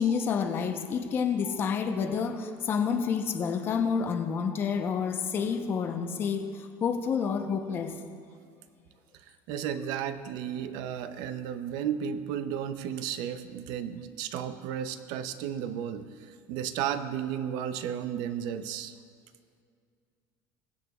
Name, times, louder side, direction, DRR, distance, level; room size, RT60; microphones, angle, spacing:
voice 1, 0.0-8.0, left 6 dB, 30° left, 6 dB, 0.7 m, -29 dB
voice 2, 9.5-18.9, right 9 dB, 60° right, 11 dB, 0.5 m, -33 dB
22.5 x 8.1 x 2.3 m, 2.2 s
cardioid pair, 170°, 8 cm